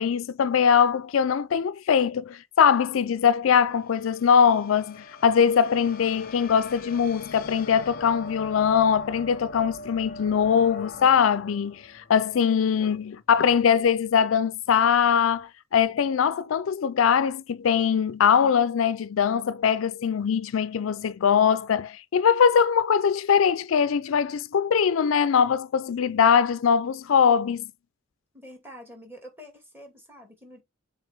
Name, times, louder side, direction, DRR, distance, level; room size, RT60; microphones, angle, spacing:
voice 1, 0.0-27.7, left 7 dB, 85° left, 0.4 m, -22 dB
sound 1, 2.9-13.2, left 2 dB, 50° left, 0.7 m, -43 dB
voice 2, 28.3-30.6, equal, 10° right, 2.4 m, -46 dB
7.2 x 3.8 x 3.4 m
head